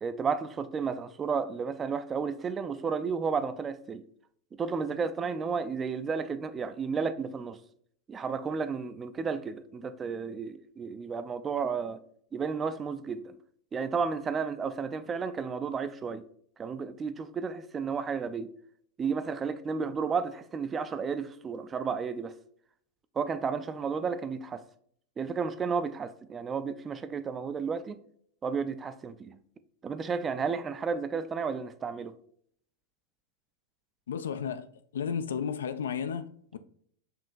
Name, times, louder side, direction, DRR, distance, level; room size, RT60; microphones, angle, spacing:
voice 1, 0.0-4.0 4.5-7.6 8.1-12.0 12.3-13.4 13.7-16.2 16.6-18.5 19.0-22.3 23.1-24.6 25.2-28.0 28.4-29.4 29.8-32.1, right 5 dB, 20° right, 0.3 m, -32 dB
voice 2, 34.1-34.7 34.9-36.6, left 7 dB, 65° left, 0.3 m, -33 dB
6.9 x 2.9 x 2.5 m
figure-of-eight pair, 90°, 0 cm